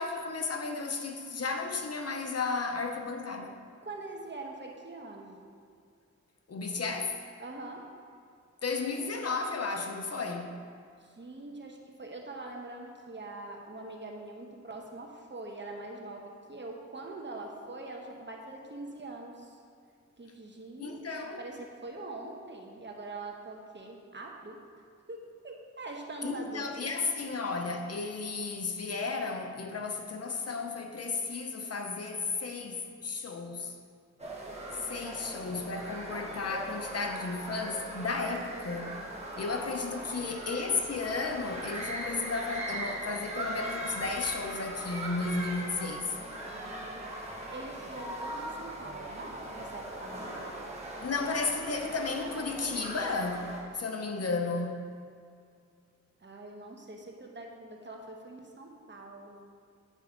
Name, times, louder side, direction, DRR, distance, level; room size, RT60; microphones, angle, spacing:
voice 1, 0.0-3.6 6.5-7.2 8.6-10.6 20.8-21.4 26.2-33.8 34.7-39.0 39.4-46.1 51.0-54.9, left 4 dB, 55° left, 0.8 m, -33 dB
voice 2, 3.8-5.4 7.4-7.8 11.0-19.6 20.2-24.6 25.1-27.0 38.7-39.0 39.9-40.0 44.7-44.8 46.4-50.5 56.2-59.4, right 2 dB, 40° right, 1.1 m, -44 dB
sound 1, 34.2-53.6, right 1 dB, 25° right, 1.5 m, -40 dB
9.2 x 5.7 x 3.7 m
wide cardioid pair, 75°, 29 cm